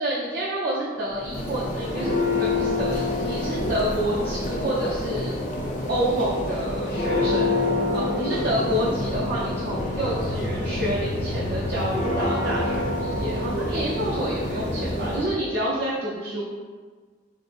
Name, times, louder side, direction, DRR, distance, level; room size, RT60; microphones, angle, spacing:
voice 1, 0.0-5.4 5.9-7.5 7.9-16.5, equal, 50° right, -7 dB, 0.5 m, -28 dB
Church bell, 1.1-15.4, left 2 dB, 40° left, 0.4 m, -27 dB
3.8 x 2.6 x 2.5 m, 1.5 s
head